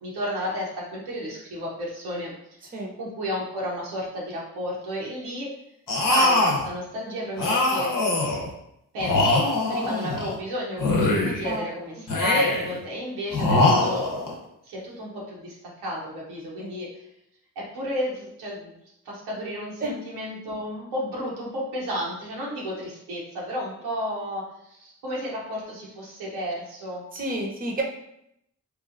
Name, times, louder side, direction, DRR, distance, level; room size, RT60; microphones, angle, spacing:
voice 1, 0.0-2.3 3.0-5.5 6.0-7.9 8.9-14.1 14.6-16.9 17.6-18.8 19.0-27.0, equal, 85° right, -4 dB, 0.8 m, -32 dB
sound 1, 5.9-6.7 7.4-8.5 9.0-10.4 10.8-11.6 12.1-12.8 13.3-14.3, left 2 dB, 55° left, 0.8 m, -22 dB
voice 2, 11.2-11.6 16.6-16.7 19.8-19.9 27.1-27.8, right 2 dB, 20° right, 0 dB, 0.7 m, -30 dB
2.9 x 2.3 x 2.5 m, 0.79 s
supercardioid pair, 40°, 38 cm